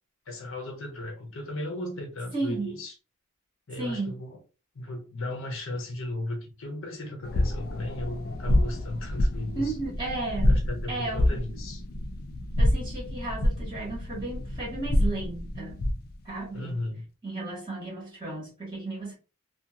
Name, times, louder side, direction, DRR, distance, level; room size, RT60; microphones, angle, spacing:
voice 1, 0.3-2.9 3.7-4.4 4.7-9.8 10.4-11.8 16.5-17.1, left 1 dB, 65° left, 0.8 m, -35 dB
voice 2, 2.3-2.8 3.8-4.1 9.5-11.4 12.6-15.8 16.2-16.8 17.2-19.1, right 2 dB, 20° right, 1.6 m, -34 dB
sound 1, 7.2-16.1, left 1 dB, 45° left, 0.4 m, -27 dB
2.8 x 2.4 x 2.3 m
head